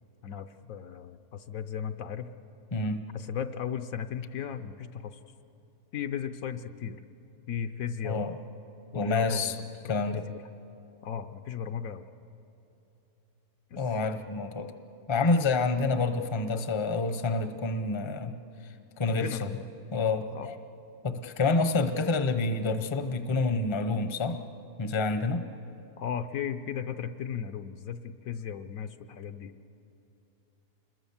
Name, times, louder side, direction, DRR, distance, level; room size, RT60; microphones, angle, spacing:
voice 1, 0.2-2.3 3.1-5.2 5.9-7.0 7.5-8.2 8.9-9.6 9.8-10.4 11.0-12.1 13.7-13.8 19.1-19.6 20.3-20.5 26.0-29.5, left 8 dB, 65° left, 9 dB, 1.0 m, -36 dB
voice 2, 2.7-3.0 8.0-8.3 8.9-9.6 9.8-10.3 13.7-14.7 15.1-18.4 18.6-19.5 19.9-20.6 21.0-24.4 24.8-25.5, left 3 dB, 25° left, 9 dB, 0.7 m, -28 dB
27.0 x 21.0 x 7.2 m, 2.9 s
omnidirectional pair, 1.6 m